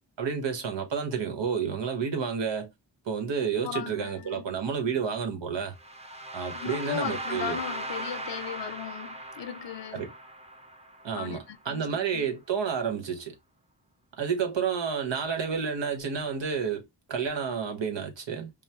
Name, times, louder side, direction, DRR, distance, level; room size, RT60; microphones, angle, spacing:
voice 1, 0.2-2.7 3.0-5.7 6.3-7.6 9.9-10.1 11.0-13.4 14.2-18.5, right 6 dB, 85° right, 1.2 m, -30 dB
voice 2, 3.6-4.5 6.5-10.1 11.1-12.3, left 10 dB, 80° left, 0.7 m, -37 dB
sound 1, 5.7-11.7, right 1 dB, 15° right, 0.7 m, -38 dB
5.4 x 2.0 x 2.9 m
wide cardioid pair, 110°, 42 cm